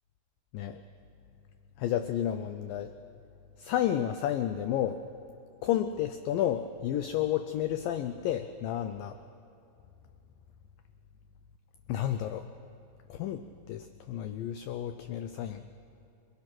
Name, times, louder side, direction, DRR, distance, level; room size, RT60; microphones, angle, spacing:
voice 1, 1.8-2.9 3.6-5.0 5.6-9.2 11.9-12.4 13.1-15.6, left 11 dB, 85° left, 9 dB, 2.0 m, -31 dB
28.0 x 21.5 x 6.0 m, 2.6 s
omnidirectional pair, 4.9 m